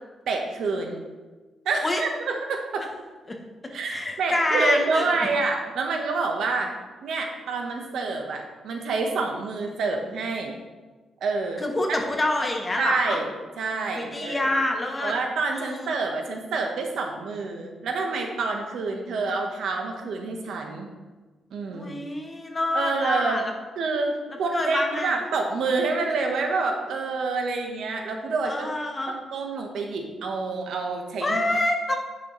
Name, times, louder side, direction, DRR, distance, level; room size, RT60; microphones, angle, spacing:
voice 1, 0.3-1.0 1.6-2.9 3.7-6.7 7.0-10.6 11.2-11.6 12.8-13.3 13.6-14.5 15.0-20.9 21.5-22.1 22.7-23.4 23.8-24.1 24.4-28.7 29.1-31.4, right 3 dB, 70° right, 3 dB, 1.1 m, -27 dB
voice 2, 3.9-5.1 11.6-13.2 13.9-15.1 15.5-15.9 21.7-23.4 24.5-25.1 28.4-29.1 31.2-31.9, left 1 dB, 15° left, 2 dB, 0.9 m, -26 dB
9.5 x 6.2 x 3.1 m, 1.3 s
wide cardioid pair, 175°, 0 cm